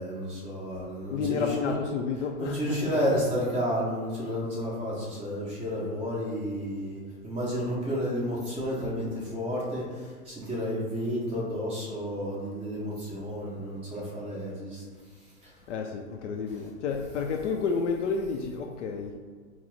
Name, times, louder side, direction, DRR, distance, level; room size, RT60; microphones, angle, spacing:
voice 1, 0.0-1.8 2.4-14.8 15.2-15.5 16.5-16.6, equal, 15° right, -6 dB, 1.0 m, -31 dB
voice 2, 1.1-3.2 15.7-19.1, left 5 dB, 55° left, 3 dB, 0.5 m, -31 dB
4.4 x 2.0 x 4.2 m, 1.5 s
hypercardioid pair, 135°, 44 cm